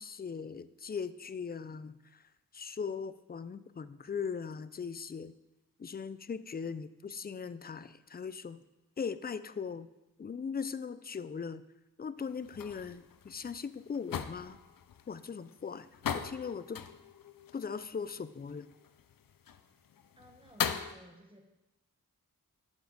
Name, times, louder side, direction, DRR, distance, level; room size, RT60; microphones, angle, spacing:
voice 1, 0.0-2.2 2.5-5.3 5.8-8.6 9.0-9.9 10.2-11.6 12.0-14.6 15.1-15.9 16.1-16.8 17.5-18.7, left 6 dB, 30° left, 14 dB, 0.4 m, -39 dB
sound 1, 12.2-20.9, left 8 dB, 80° left, 0.5 m, -40 dB
voice 2, 20.2-21.5, right 1 dB, 15° right, 3 dB, 1.2 m, -56 dB
8.1 x 7.1 x 3.9 m, 0.97 s
wide cardioid pair, 70°, 33 cm